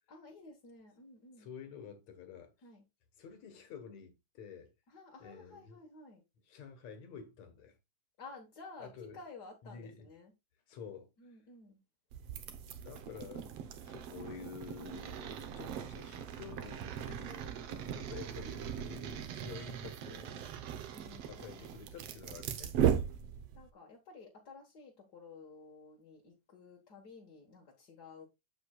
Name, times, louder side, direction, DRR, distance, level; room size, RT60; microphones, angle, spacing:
voice 1, 0.1-1.5 2.6-2.8 4.9-6.2 8.2-10.3 11.2-11.8 17.7-17.9 20.9-21.7 23.5-28.3, left 3 dB, 45° left, 1.5 m, -53 dB
voice 2, 1.4-2.5 3.2-4.7 5.2-5.8 6.4-7.8 8.8-9.2 9.6-10.1 10.7-11.4 12.8-13.5 13.8-17.5 17.9-20.5 21.3-22.8, left 6 dB, 65° left, 2.6 m, -49 dB
sound 1, 12.1-23.7, right 9 dB, 65° right, 1.7 m, -38 dB
8.1 x 7.8 x 2.4 m
omnidirectional pair, 3.4 m